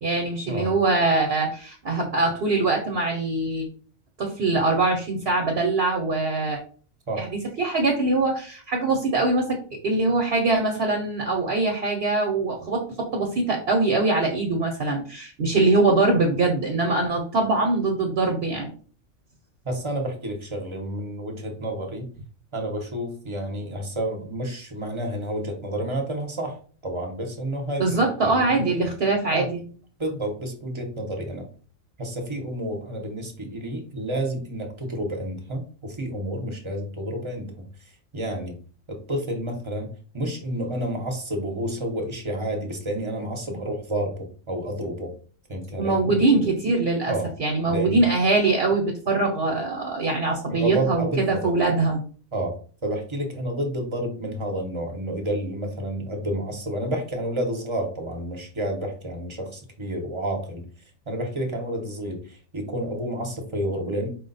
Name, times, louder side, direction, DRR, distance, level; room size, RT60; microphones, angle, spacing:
voice 1, 0.0-3.7 4.2-6.6 7.2-9.6 9.8-18.7 27.8-29.6 45.8-47.1 47.4-52.0, right 3 dB, 55° right, 1 dB, 0.9 m, -23 dB
voice 2, 19.6-22.1 22.5-26.6 26.8-28.5 29.3-29.4 30.0-31.5 32.0-38.6 38.9-45.1 45.5-46.5 47.1-47.3 47.7-48.0 50.5-51.5 52.3-52.5 52.8-60.7 61.1-64.1, right 1 dB, 25° right, 2 dB, 0.7 m, -30 dB
4.7 x 2.2 x 3.9 m, 0.41 s
omnidirectional pair, 1.4 m